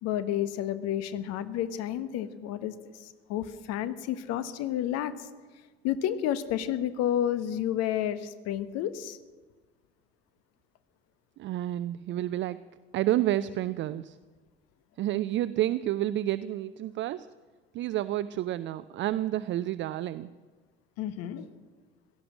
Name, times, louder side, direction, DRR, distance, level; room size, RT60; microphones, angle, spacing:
voice 1, 0.0-5.3 5.8-9.2 21.0-21.5, left 11 dB, 50° left, 13 dB, 1.2 m, -31 dB
voice 2, 11.4-12.6 12.9-14.2 15.0-17.3 17.7-20.3, right 13 dB, 35° right, 15 dB, 0.5 m, -29 dB
17.0 x 12.5 x 6.2 m, 1.3 s
figure-of-eight pair, 55°, 32 cm